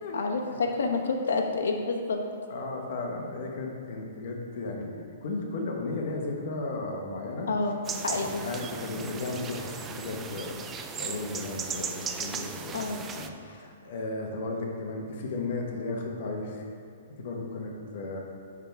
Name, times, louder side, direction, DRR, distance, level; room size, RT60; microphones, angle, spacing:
voice 1, 0.1-2.2 7.5-7.7 8.0-8.4 12.7-13.0, left 4 dB, 80° left, 3 dB, 1.0 m, -28 dB
voice 2, 2.5-7.5 8.2-10.6 11.0-12.7 13.1-16.6 17.1-18.2, left 3 dB, 55° left, 1 dB, 1.2 m, -35 dB
sound 1, 7.8-13.3, right 6 dB, 15° right, 0.4 m, -37 dB
9.9 x 3.6 x 4.6 m, 2.5 s
hypercardioid pair, 150°, 0 cm